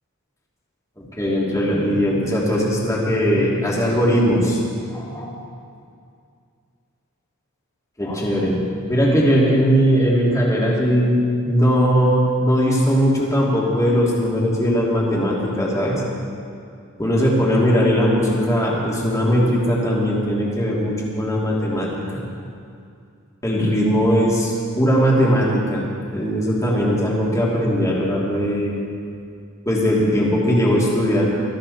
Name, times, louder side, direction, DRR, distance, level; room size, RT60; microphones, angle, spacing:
voice 1, 1.0-4.6 4.9-5.3 8.0-8.6 8.9-16.0 17.0-22.2 23.4-28.7 29.6-31.3, equal, 15° left, -4 dB, 2.9 m, -19 dB
21.0 x 14.0 x 4.3 m, 2.4 s
head